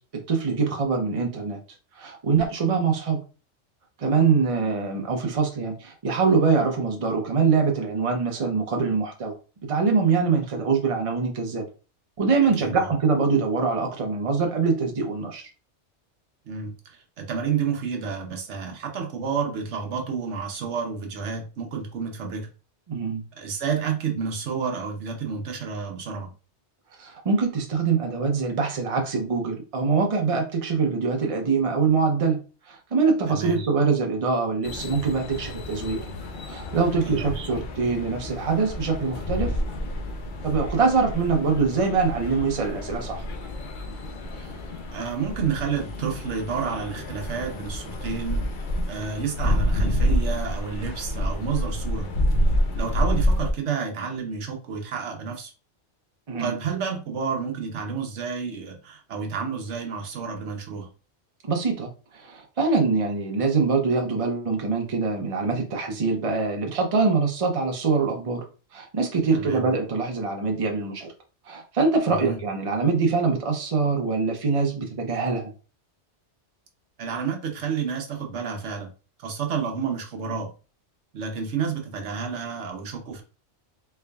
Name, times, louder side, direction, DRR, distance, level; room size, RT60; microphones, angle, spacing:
voice 1, 0.3-1.6 2.0-3.2 4.0-9.3 9.7-11.6 12.2-15.4 22.9-23.2 27.0-32.4 32.7-36.0 36.5-39.5 40.4-43.2 56.3-56.5 61.4-68.4 68.7-71.1 71.5-75.5, right 4 dB, 35° right, 2 dB, 0.7 m, -24 dB
voice 2, 12.6-12.9 16.5-22.5 23.4-26.3 33.3-33.6 37.0-37.3 44.3-44.6 44.9-48.5 48.9-52.1 52.7-55.5 56.4-60.9 69.3-69.7 72.1-72.4 77.0-78.9 79.2-80.5 81.1-83.2, right 6 dB, 75° right, 3 dB, 1.1 m, -30 dB
sound 1, 34.6-53.5, equal, 55° left, 0.6 m, -28 dB
3.8 x 3.3 x 2.3 m, 0.34 s
omnidirectional pair, 1.2 m